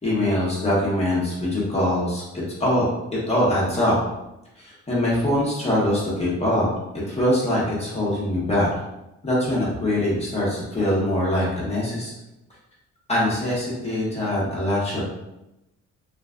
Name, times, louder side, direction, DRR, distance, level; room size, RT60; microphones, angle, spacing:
voice 1, 0.0-2.8 3.3-3.9 4.6-6.6 7.1-8.7 9.2-12.1 13.1-15.0, left 1 dB, 20° left, -6 dB, 1.4 m, -23 dB
3.4 x 3.0 x 2.4 m, 0.93 s
cardioid pair, 90°, 30 cm